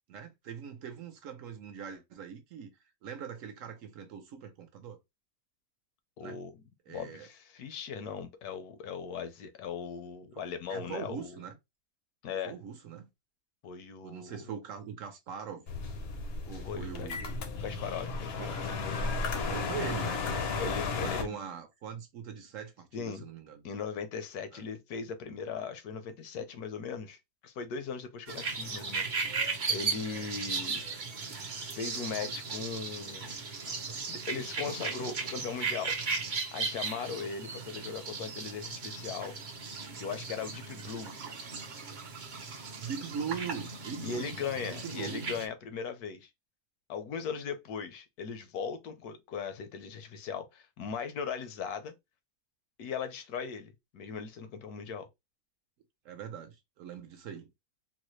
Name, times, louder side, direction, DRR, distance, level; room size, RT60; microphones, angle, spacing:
voice 1, 0.1-2.7 3.0-5.0 6.2-6.4 6.9-7.3 10.3-10.4 10.7-11.5 12.4-13.1 14.0-15.6 16.4-17.5 18.4-18.7 19.4-20.2 21.0-23.6 24.5-24.6 42.8-45.3 56.0-57.5, right 7 dB, 65° right, 0.9 m, -41 dB
voice 2, 6.2-11.4 12.2-12.5 13.6-14.5 16.6-17.2 17.6-19.0 20.6-21.4 22.9-23.2 23.6-27.2 27.4-29.1 29.7-30.8 31.7-33.4 34.1-36.0 36.5-39.4 40.0-41.1 44.0-46.3 46.9-51.9 52.8-55.1, left 6 dB, 80° left, 1.2 m, -39 dB
sound 1, 15.7-21.2, left 4 dB, 60° left, 0.7 m, -34 dB
sound 2, 28.3-45.5, right 4 dB, 50° right, 0.6 m, -37 dB
4.0 x 2.0 x 3.0 m
omnidirectional pair, 1.6 m